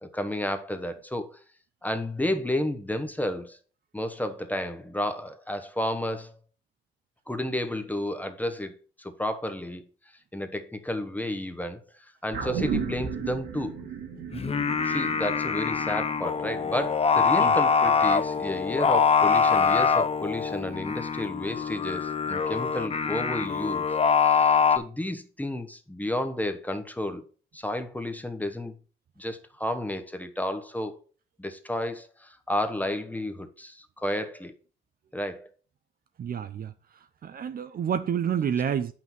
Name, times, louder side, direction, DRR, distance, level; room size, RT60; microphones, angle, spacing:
voice 1, 0.0-1.3 1.8-3.6 3.9-6.3 7.3-9.8 10.3-13.8 14.8-27.2 27.5-28.7 29.2-31.0 31.4-34.5 35.1-35.5, left 1 dB, 10° left, 1.1 m, -32 dB
sound 1, 12.3-16.9 17.3-17.4, right 6 dB, 80° right, 2.6 m, -35 dB
Singing, 14.3-24.8, left 6 dB, 30° left, 0.7 m, -24 dB
voice 2, 36.2-36.7 37.2-38.9, right 8 dB, 50° right, 0.6 m, -29 dB
7.7 x 5.9 x 4.4 m
cardioid pair, 90°, 20 cm